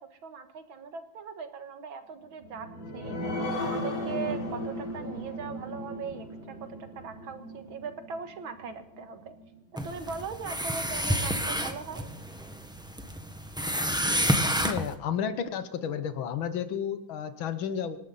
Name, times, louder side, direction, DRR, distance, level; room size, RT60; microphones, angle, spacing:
voice 1, 0.0-2.7 2.9-9.4 9.8-12.1, right 5 dB, 85° right, 8 dB, 2.4 m, -40 dB
sound 1, 2.4-9.5 9.9-10.0 10.4-10.5, left 1 dB, 50° left, 4.2 m, -36 dB
sound 2, 9.8-14.9, equal, 5° right, 1.2 m, -29 dB
voice 2, 14.6-18.0, left 8 dB, 85° left, 10 dB, 1.9 m, -32 dB
26.0 x 12.0 x 4.2 m, 0.81 s
omnidirectional pair, 2.1 m